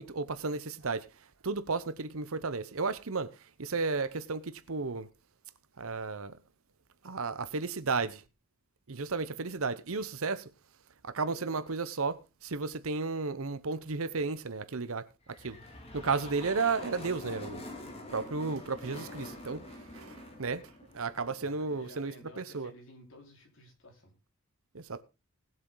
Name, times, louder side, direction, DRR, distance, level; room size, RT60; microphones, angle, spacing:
voice 1, 0.0-5.1 5.8-6.4 7.0-8.2 8.9-10.5 11.0-15.6 15.9-17.6 18.1-20.6 20.9-22.7 24.7-25.0, right 4 dB, 70° right, 0.8 m, -33 dB
sound 1, 15.3-21.7, left 1 dB, 25° left, 2.4 m, -46 dB
voice 2, 21.4-24.1, equal, 60° left, 4.6 m, -53 dB
19.0 x 7.6 x 3.9 m
head